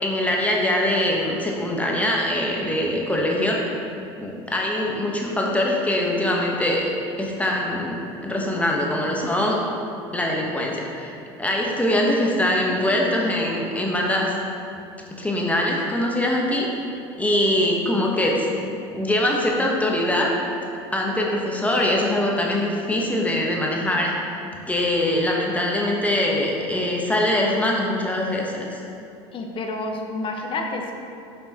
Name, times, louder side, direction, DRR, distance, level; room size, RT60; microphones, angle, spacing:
voice 1, 0.0-3.6 4.2-6.8 7.2-8.0 8.2-9.6 10.1-14.3 15.2-16.7 17.2-18.5 18.9-20.3 20.9-24.1 24.6-28.8, left 1 dB, 10° left, -2 dB, 1.1 m, -23 dB
voice 2, 29.3-30.9, left 2 dB, 40° left, 2 dB, 1.0 m, -29 dB
8.5 x 5.4 x 2.9 m, 2.7 s
hypercardioid pair, 85°, 14 cm